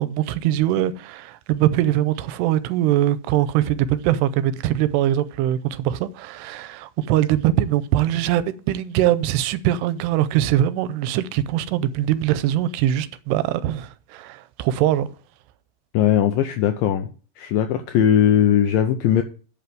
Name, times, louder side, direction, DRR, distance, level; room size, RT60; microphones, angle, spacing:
voice 1, 0.0-15.1, right 12 dB, 85° right, 2.7 m, -22 dB
voice 2, 15.9-17.1 17.4-19.2, left 10 dB, 85° left, 2.0 m, -19 dB
8.4 x 5.7 x 7.6 m
omnidirectional pair, 4.7 m